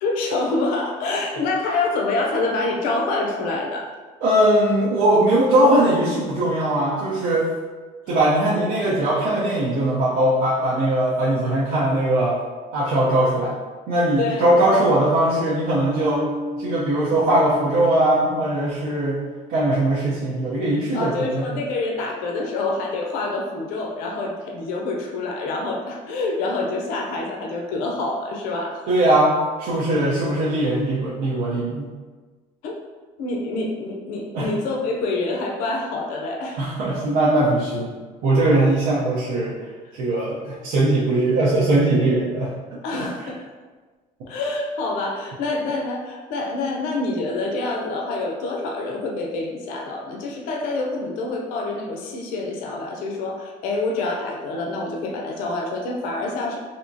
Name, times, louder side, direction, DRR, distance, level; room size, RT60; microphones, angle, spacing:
voice 1, 0.0-3.9 14.2-14.5 20.9-28.8 32.6-32.7 33.2-36.6 42.8-43.4 44.3-56.6, left 2 dB, 85° left, 0 dB, 0.6 m, -26 dB
voice 2, 4.2-7.4 8.1-12.4 12.7-13.5 13.9-16.2 16.6-19.2 19.5-21.6 28.9-31.9 34.3-34.5 36.6-37.9 38.2-39.6 39.9-42.5 42.9-43.3, right 1 dB, 75° right, -8 dB, 0.7 m, -20 dB
sound 1, 16.0-22.7, left 2 dB, 10° right, 0.6 m, -37 dB
3.5 x 2.8 x 2.7 m, 1.4 s
cardioid pair, 165°, 14 cm